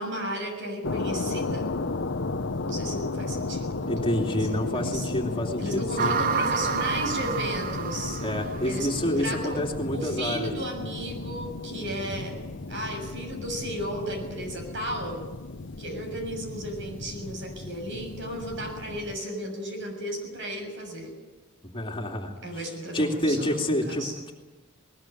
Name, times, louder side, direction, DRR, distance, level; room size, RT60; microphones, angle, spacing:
voice 1, 0.0-1.7 2.6-5.1 5.6-8.2 8.6-9.7 9.9-12.4 12.7-15.2 15.8-21.1 22.4-24.1, right 1 dB, 60° right, 4 dB, 7.0 m, -34 dB
sound 1, 0.8-19.2, left 3 dB, 60° left, 0.9 m, -34 dB
voice 2, 3.9-6.1 8.2-10.7 11.7-12.1 21.7-22.6 22.9-24.3, left 1 dB, 25° left, 1 dB, 2.7 m, -29 dB
sound 2, 6.0-9.3, right 5 dB, 40° right, 0.7 m, -29 dB
21.0 x 20.0 x 9.2 m, 1.2 s
head